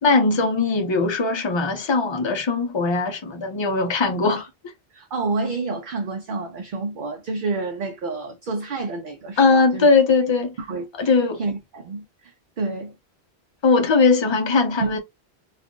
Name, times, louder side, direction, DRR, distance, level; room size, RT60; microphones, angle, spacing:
voice 1, 0.0-4.5 9.4-10.5 11.0-11.4 13.6-15.0, left 4 dB, 35° left, 0.5 m, -19 dB
voice 2, 4.9-9.9 10.6-12.9 14.8-15.0, right 3 dB, 60° right, 0.7 m, -29 dB
2.4 x 2.4 x 3.6 m
omnidirectional pair, 1.1 m